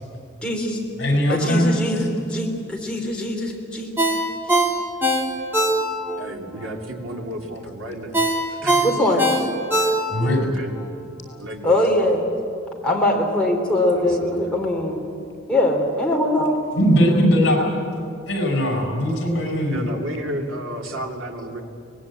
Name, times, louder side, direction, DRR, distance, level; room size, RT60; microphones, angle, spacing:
voice 1, 0.4-0.8 1.3-3.9 5.6-5.7 8.8-9.5 11.6-12.2 12.8-15.0 15.5-16.6, left 1 dB, 5° left, -2 dB, 3.3 m, -22 dB
voice 2, 1.0-1.7 10.1-10.4 16.7-17.6 18.3-19.9, equal, 55° left, 1 dB, 6.1 m, -19 dB
Ringtone, 4.0-6.2 6.6-6.7 8.1-10.4 10.8-10.9, right 1 dB, 10° right, 2.3 m, -21 dB
voice 3, 6.2-8.9 9.3-9.5 9.7-10.8 11.1-12.1 13.9-14.6 19.7-21.6, equal, 85° right, 2 dB, 2.7 m, -33 dB
23.5 x 19.5 x 8.8 m, 2.4 s
head